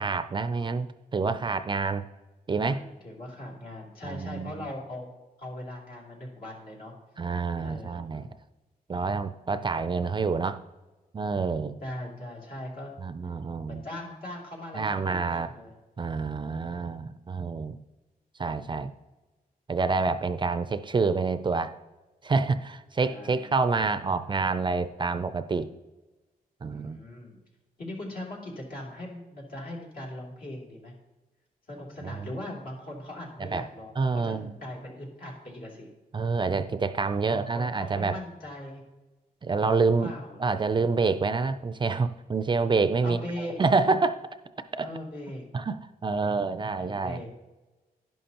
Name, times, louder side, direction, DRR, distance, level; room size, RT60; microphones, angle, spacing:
voice 1, 0.0-2.0 2.5-2.8 4.0-4.7 7.2-8.3 8.9-10.6 11.1-11.7 13.0-13.8 14.7-15.5 16.0-17.8 18.4-18.9 19.7-21.7 22.2-25.7 26.6-27.0 32.0-32.3 33.4-33.6 34.0-34.5 36.1-38.2 39.4-40.1 40.4-43.2 43.6-44.2 44.8-44.9 45.5-47.2, right 4 dB, 30° right, 11 dB, 0.4 m, -27 dB
voice 2, 2.7-5.1 5.4-6.9 7.6-8.3 11.8-12.9 13.7-15.7 16.5-17.1 23.0-23.5 26.7-27.4 27.8-30.9 31.7-35.9 37.3-38.8 40.0-40.5 43.0-43.6 44.8-45.4 46.8-47.3, left 1 dB, 65° left, -3 dB, 2.9 m, -40 dB
11.0 x 11.0 x 2.9 m, 1.1 s
wide cardioid pair, 115°, 16 cm